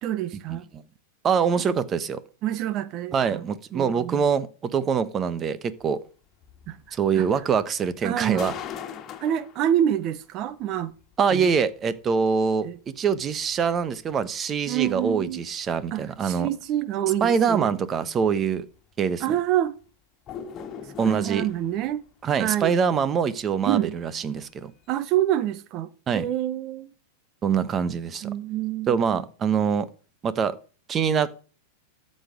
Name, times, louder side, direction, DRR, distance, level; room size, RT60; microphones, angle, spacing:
voice 1, 0.0-0.6 2.4-3.5 3.7-4.3 6.7-7.3 8.0-8.5 9.2-10.9 11.3-11.5 12.6-12.8 14.7-15.4 15.9-17.8 19.2-19.8 21.0-22.0 22.4-22.7 23.6-23.9 24.9-26.9 28.2-29.2, right 11 dB, 45° right, 1.0 m, -27 dB
voice 2, 1.2-2.2 3.1-6.0 6.9-8.5 11.2-12.7 13.0-16.5 17.2-18.7 19.0-19.2 21.0-21.5 22.2-24.7 26.1-26.3 27.4-28.3 28.9-29.9 30.2-30.6 30.9-31.4, right 6 dB, 30° right, 1.2 m, -24 dB
sound 1, 5.8-5.9 6.3-7.4 7.8-10.0 10.5-10.6 11.0-11.1 11.5-11.6 12.0-12.1 12.5-12.6 13.0-14.2 14.6-14.7 15.1-15.2 15.7-15.8 16.0-16.2 16.7-16.8 17.0-17.4 17.7-17.8 18.2-18.3 18.7-18.8 19.2-19.4 19.8-19.9 20.3-22.1 22.4-23.0 23.3-23.6 23.9-24.0 24.4-24.6, left 8 dB, 35° left, 2.0 m, -41 dB
13.0 x 6.6 x 5.1 m
hypercardioid pair, 100°, 0 cm